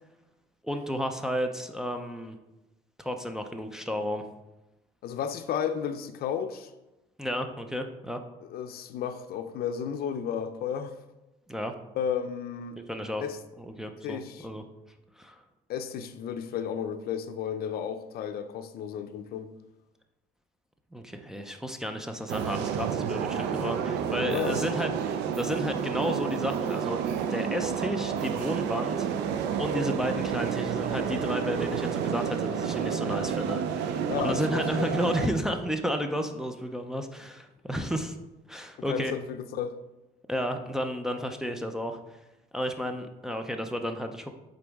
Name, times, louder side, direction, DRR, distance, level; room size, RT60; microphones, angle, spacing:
voice 1, 0.6-2.4 3.0-4.2 7.2-8.2 11.5-11.7 12.9-13.2 13.6-14.6 15.2-15.4 20.9-29.1 29.6-38.2 38.5-39.1 40.3-42.0 42.5-44.3, equal, 5° right, 0.5 m, -32 dB
voice 2, 5.0-6.7 8.5-10.9 12.0-12.8 13.2-13.4 14.0-14.5 15.7-19.5 24.3-24.6 34.1-34.9 38.9-39.8, left 8 dB, 65° left, 0.5 m, -33 dB
sound 1, 22.3-35.3, right 8 dB, 85° right, 0.5 m, -30 dB
8.2 x 3.9 x 3.5 m
cardioid pair, 110°, 17 cm